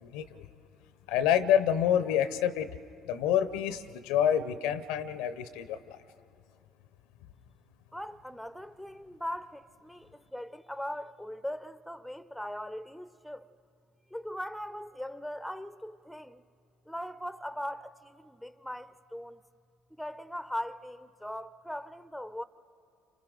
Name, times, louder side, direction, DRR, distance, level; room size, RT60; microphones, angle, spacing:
voice 1, 0.0-0.5 1.1-2.7 3.0-6.0, left 9 dB, 75° left, 0.7 m, -27 dB
voice 2, 7.9-13.5 14.1-16.4 16.9-19.4 19.9-22.4, equal, ahead, 0.6 m, -40 dB
29.5 x 26.0 x 3.9 m
hypercardioid pair, 55°, 0 cm